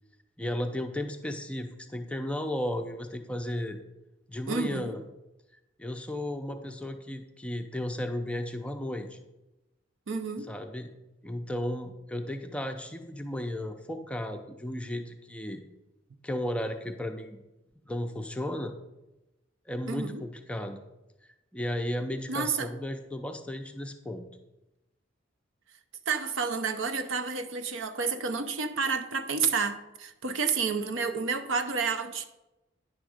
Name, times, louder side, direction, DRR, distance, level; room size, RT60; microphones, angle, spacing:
voice 1, 0.4-3.8 4.3-5.0 5.8-9.2 10.5-10.9 11.2-15.6 16.2-17.4 17.9-18.8 19.7-20.8 21.5-24.3, left 1 dB, 5° left, 5 dB, 0.5 m, -34 dB
voice 2, 4.5-4.9 10.1-10.5 19.9-20.2 22.3-22.7 26.1-32.2, right 5 dB, 75° right, 8 dB, 0.7 m, -30 dB
9.8 x 3.5 x 6.3 m, 0.98 s
head